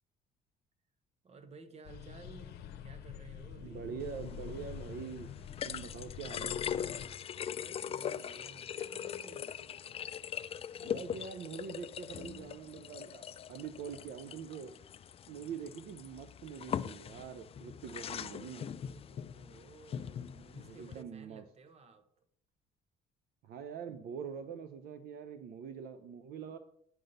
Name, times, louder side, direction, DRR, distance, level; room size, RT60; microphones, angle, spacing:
voice 1, 1.2-4.0 7.5-9.6 18.5-22.1, right 3 dB, 40° right, 9 dB, 1.2 m, -55 dB
sound 1, 1.8-7.1, left 9 dB, 75° left, 0.8 m, -47 dB
voice 2, 3.6-5.3 5.6-6.6 10.8-14.7 15.3-18.7 20.7-21.4 23.4-26.6, right 7 dB, 70° right, 8 dB, 0.7 m, -44 dB
sound 2, 4.0-21.0, left 8 dB, 35° left, 0.3 m, -41 dB
9.1 x 4.1 x 6.5 m, 0.69 s
cardioid pair, 110°, 17 cm